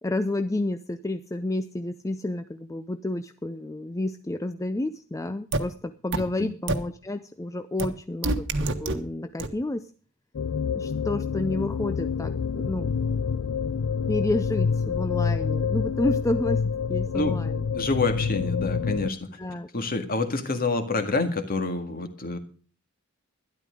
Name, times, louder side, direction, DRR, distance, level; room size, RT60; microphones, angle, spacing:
voice 1, 0.0-8.5 8.8-9.9 10.7-13.0 14.1-17.6 19.4-19.7, left 2 dB, 15° left, 10 dB, 0.5 m, -30 dB
sound 1, 5.5-5.6 6.1-6.2 6.7-6.8 7.8-7.9 8.2-8.9 9.4-9.5, right 2 dB, 60° right, 1.3 m, -25 dB
sound 2, 10.3-19.1, left 6 dB, 90° left, 0.5 m, -27 dB
voice 2, 17.7-19.3 19.7-22.4, left 3 dB, 45° left, 7 dB, 1.9 m, -27 dB
12.5 x 11.5 x 5.1 m, 0.39 s
head